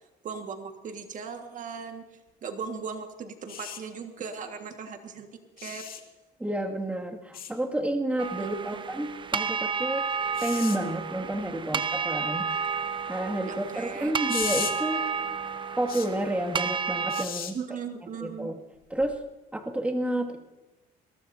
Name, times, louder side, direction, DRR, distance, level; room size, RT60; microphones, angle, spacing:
voice 1, 0.2-2.0 2.4-5.3 5.6-5.9 8.4-8.8 11.7-11.8 13.4-14.1 17.5-18.5, right 6 dB, 50° right, 5 dB, 1.7 m, -38 dB
sound 1, 3.5-3.8 5.6-6.0 7.3-7.5 10.3-10.8 14.3-14.7 15.9-16.1 17.1-17.5 19.0-19.2, left 9 dB, 60° left, 2.3 m, -35 dB
voice 2, 6.4-10.1 10.4-12.5 13.1-15.1 15.8-17.6 18.2-18.6 18.9-19.2 19.5-20.4, right 1 dB, 10° right, 1 dB, 2.1 m, -30 dB
sound 2, 8.2-17.2, right 5 dB, 30° right, 0.8 m, -31 dB
22.0 x 18.5 x 2.7 m, 1.1 s
cardioid pair, 110°, 17 cm